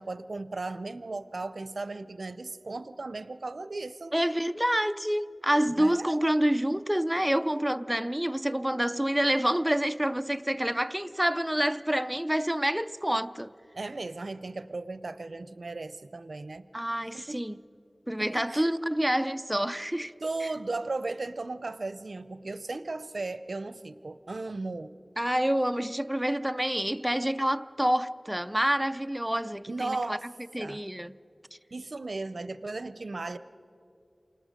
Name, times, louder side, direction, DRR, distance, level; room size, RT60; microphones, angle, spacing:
voice 1, 0.0-4.1 5.8-6.1 13.7-16.7 17.1-17.4 18.2-18.7 20.2-25.0 29.7-30.3 30.6-30.8 31.7-33.4, right 3 dB, 80° right, 0.5 m, -36 dB
voice 2, 4.1-13.5 16.7-17.6 18.1-20.1 20.4-20.5 25.2-30.2 30.5-31.1, equal, 10° right, 0.5 m, -27 dB
28.0 x 19.0 x 5.1 m
wide cardioid pair, 45°, 0 cm